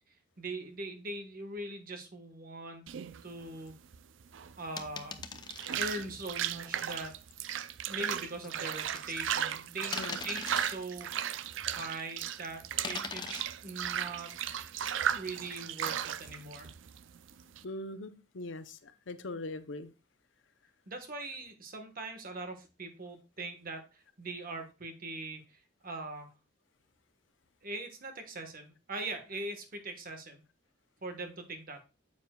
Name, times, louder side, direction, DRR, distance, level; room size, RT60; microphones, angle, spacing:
voice 1, 0.4-2.8 3.2-3.7 4.6-5.2 5.8-7.2 7.9-10.0 10.2-14.3 15.1-16.7 20.9-26.3 27.6-30.4 31.0-31.8, right 2 dB, 50° right, 1.4 m, -41 dB
sound 1, 2.9-17.6, right 9 dB, 80° right, 0.4 m, -36 dB
sound 2, 4.8-5.8 6.8-7.0 8.4-9.5 9.9-10.8 11.8-12.5 12.8-13.4, left 5 dB, 25° left, 0.6 m, -41 dB
voice 2, 17.6-19.9, left 2 dB, 75° left, 0.7 m, -41 dB
9.0 x 7.3 x 2.3 m
head